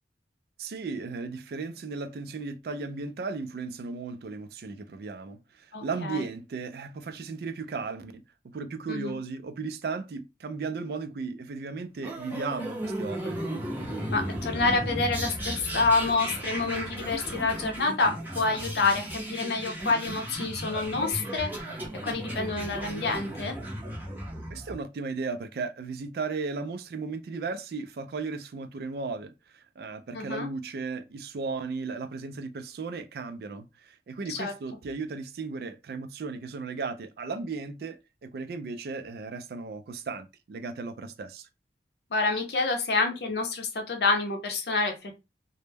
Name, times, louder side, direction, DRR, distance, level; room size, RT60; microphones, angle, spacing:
voice 1, 0.6-13.4 24.5-41.5, right 4 dB, 60° right, 0.3 m, -36 dB
voice 2, 5.7-6.2 8.9-9.2 14.1-21.8 22.0-23.6 30.1-30.5 34.3-34.5 42.1-45.2, left 3 dB, 70° left, 0.6 m, -28 dB
sound 1, 12.0-24.7, equal, 10° right, 0.5 m, -35 dB
2.1 x 2.0 x 3.2 m
head